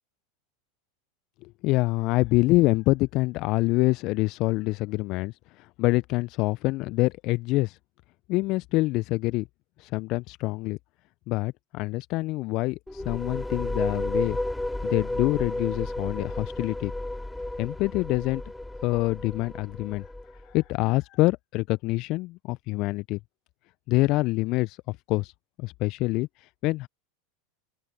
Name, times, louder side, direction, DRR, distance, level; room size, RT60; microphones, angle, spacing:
voice 1, 1.4-7.8 8.3-9.5 9.8-10.8 11.3-14.4 14.8-16.9 17.6-18.4 18.8-20.0 20.4-23.2 23.9-25.3 25.6-26.9, left 21 dB, 50° left, 0.7 m, -26 dB
sound 1, 12.9-20.5, left 1 dB, 5° left, 2.5 m, -32 dB
open air
figure-of-eight pair, 85°, 0 cm